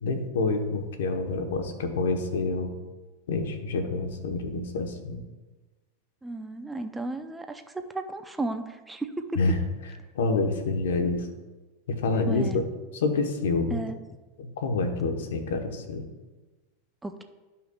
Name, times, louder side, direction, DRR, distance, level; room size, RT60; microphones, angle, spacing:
voice 1, 0.0-2.7 3.3-5.2 9.4-9.6 10.1-11.3 11.9-12.6 12.9-13.8 14.4-16.1, left 3 dB, 85° left, 6 dB, 1.0 m, -27 dB
voice 2, 6.2-9.4 12.3-12.6 13.7-14.0 17.0-17.2, right 2 dB, 10° right, 7 dB, 0.6 m, -34 dB
12.5 x 5.6 x 2.3 m, 1.2 s
supercardioid pair, 120°, 0 cm